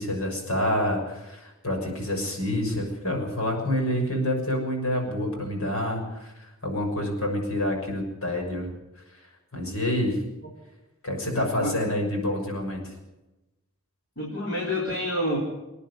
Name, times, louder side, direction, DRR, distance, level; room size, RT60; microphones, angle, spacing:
voice 1, 0.0-6.3 6.6-8.7 9.5-10.2 11.0-12.9, left 1 dB, 80° left, 2 dB, 6.3 m, -27 dB
voice 2, 11.2-11.7 14.2-15.4, left 1 dB, 50° left, -3 dB, 4.3 m, -28 dB
26.5 x 10.0 x 9.8 m, 1.0 s
head